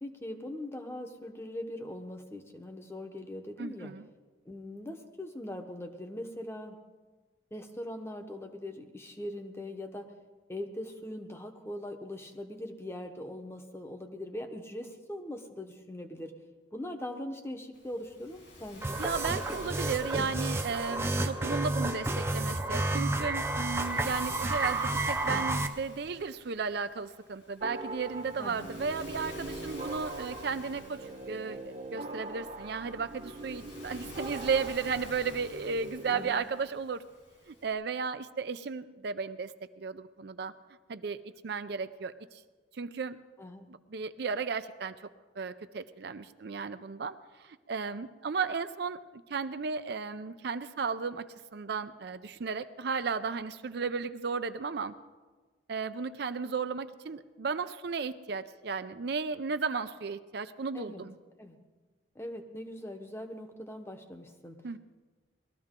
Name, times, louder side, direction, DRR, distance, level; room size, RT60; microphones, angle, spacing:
voice 1, 0.0-3.9 4.5-6.8 7.5-10.1 10.5-16.3 16.7-19.0 28.4-28.7 36.1-36.4 43.4-43.7 60.7-61.0 61.4-61.6 62.1-64.6, left 1 dB, 15° left, 5 dB, 0.9 m, -41 dB
voice 2, 3.6-4.1 19.0-37.0 37.5-40.5 40.9-42.4 42.7-43.2 43.9-45.0 45.4-49.0 49.3-51.2 51.5-54.9 55.7-61.1 64.6-64.8, right 5 dB, 55° right, 11 dB, 0.5 m, -34 dB
Waves surf, 17.7-37.7, left 1 dB, 70° left, 3.5 m, -50 dB
sound 1, 18.8-25.7, right 2 dB, 15° right, 0.6 m, -31 dB
sound 2, 27.6-36.3, right 2 dB, 35° right, 1.0 m, -42 dB
20.0 x 13.0 x 3.7 m, 1.3 s
head